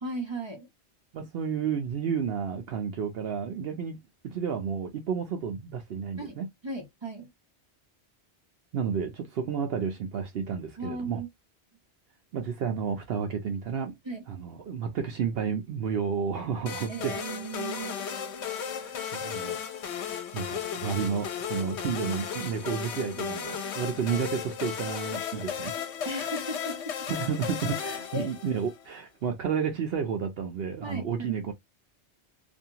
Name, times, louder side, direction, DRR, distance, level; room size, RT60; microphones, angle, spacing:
voice 1, 0.0-0.7 6.2-6.4 6.6-7.3 10.8-11.3 14.0-14.2 16.9-18.0 24.0-24.2 26.0-27.0 28.1-28.3 30.8-31.4, right 2 dB, 30° right, 0.6 m, -36 dB
voice 2, 1.1-4.0 4.2-6.5 8.7-11.2 12.3-13.9 14.3-17.2 18.7-19.6 20.0-25.7 27.1-31.5, right 6 dB, 65° right, 0.8 m, -31 dB
sound 1, 16.7-28.8, left 7 dB, 80° left, 0.9 m, -35 dB
2.6 x 2.3 x 2.7 m
omnidirectional pair, 1.1 m